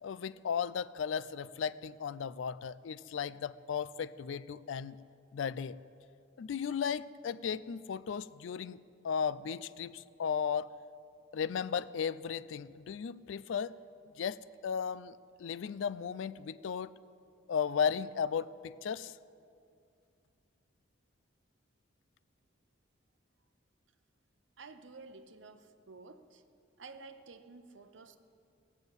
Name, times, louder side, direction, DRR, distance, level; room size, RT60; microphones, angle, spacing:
voice 1, 0.0-5.0 5.3-5.8 6.4-8.8 9.0-10.7 11.3-13.7 14.2-16.9 17.5-19.1, left 7 dB, 75° left, 18 dB, 0.4 m, -35 dB
voice 2, 24.6-26.4 26.8-28.2, right 4 dB, 70° right, 10 dB, 0.8 m, -52 dB
17.5 x 7.1 x 8.0 m, 2.5 s
head